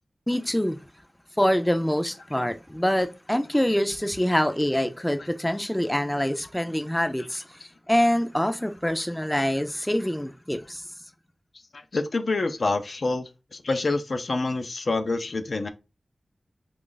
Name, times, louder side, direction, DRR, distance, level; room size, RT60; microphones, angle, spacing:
voice 1, 0.3-0.8 1.4-10.8, equal, 10° left, 0.4 m, -25 dB
voice 2, 11.7-15.7, left 3 dB, 65° left, 0.5 m, -27 dB
3.0 x 2.4 x 3.9 m
wide cardioid pair, 70°, 0 cm